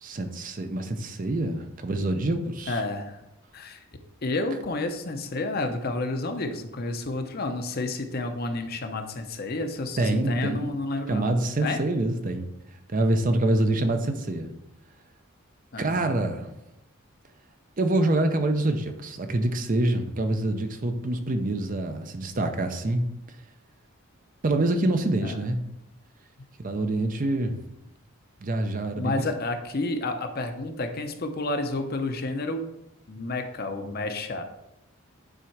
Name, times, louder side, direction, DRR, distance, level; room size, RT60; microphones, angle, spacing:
voice 1, 0.0-2.8 10.0-10.7 11.1-12.4 12.9-14.5 15.8-16.5 17.8-23.1 24.4-25.6 26.6-27.6 28.4-29.3, right 2 dB, 40° right, 7 dB, 0.6 m, -26 dB
voice 2, 2.7-3.2 3.5-3.8 4.2-11.3 11.6-11.8 15.7-16.1 25.2-25.4 29.0-32.6 33.1-34.4, left 2 dB, 45° left, 6 dB, 0.7 m, -30 dB
9.0 x 3.7 x 4.6 m, 0.88 s
head